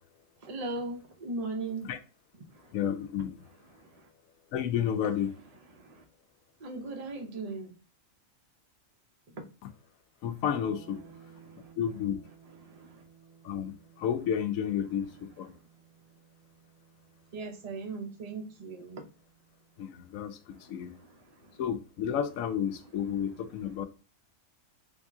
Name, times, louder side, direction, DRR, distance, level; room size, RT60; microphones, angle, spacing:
voice 1, 0.4-1.9 3.8-3.9 5.8-6.0 6.6-7.7 9.4-9.5 12.6-13.0 17.3-19.0 21.0-21.1, right 3 dB, 35° right, 0.7 m, -38 dB
voice 2, 2.7-3.4 4.5-5.3 10.2-11.0 11.8-12.2 13.4-15.5 19.8-20.9 21.6-23.9, left 8 dB, 80° left, 1.0 m, -31 dB
sound 1, 10.6-20.3, right 8 dB, 60° right, 1.0 m, -58 dB
3.5 x 2.8 x 3.5 m
omnidirectional pair, 1.4 m